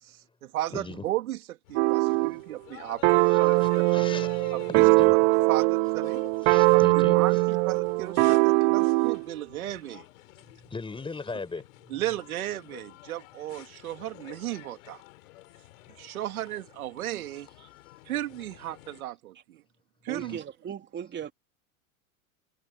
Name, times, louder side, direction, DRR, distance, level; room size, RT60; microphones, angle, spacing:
voice 1, 0.0-4.0 4.5-4.9 5.5-6.2 6.7-10.0 11.9-15.0 16.0-17.5 18.0-19.6 20.0-20.4, right 14 dB, 85° right, 2.9 m, -35 dB
voice 2, 0.7-1.0 3.3-5.8 6.4-7.4 10.7-12.2 20.1-20.4, left 4 dB, 10° left, 4.8 m, -40 dB
sound 1, 1.6-19.0, left 19 dB, 70° left, 4.6 m, -51 dB
sound 2, 1.8-2.4 3.0-9.3, right 27 dB, 50° right, 0.8 m, -21 dB
voice 3, 20.1-21.3, right 8 dB, 25° right, 3.1 m, -37 dB
hypercardioid pair, 120°, 42 cm